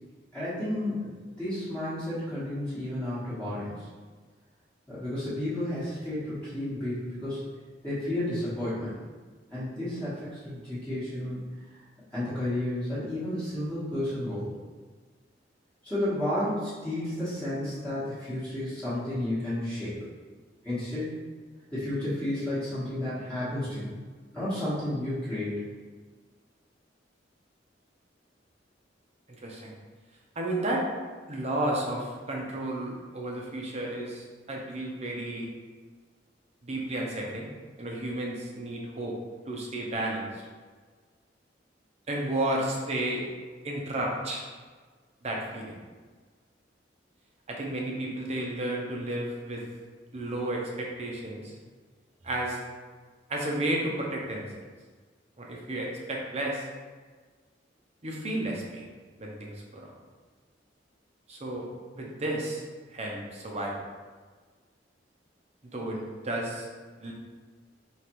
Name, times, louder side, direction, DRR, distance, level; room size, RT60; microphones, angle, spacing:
voice 1, 0.3-1.1 1.4-3.9 4.9-7.4 7.8-8.9 9.5-11.4 12.1-14.5 15.8-20.1 20.6-21.2 21.7-23.9 24.3-25.7, left 1 dB, 5° left, -13 dB, 1.3 m, -32 dB
voice 2, 29.4-29.7 30.4-30.9 31.3-35.5 36.6-37.5 37.8-39.2 39.5-40.3 42.1-43.2 43.6-44.4 45.2-45.7 47.5-49.6 50.1-51.5 52.2-52.6 53.3-54.4 55.4-56.7 58.0-58.9 59.2-59.9 61.3-61.7 61.9-62.6 62.9-63.7 65.6-66.7 67.0-67.1, right 1 dB, 35° right, -1 dB, 0.8 m, -32 dB
5.0 x 3.2 x 3.0 m, 1.4 s
head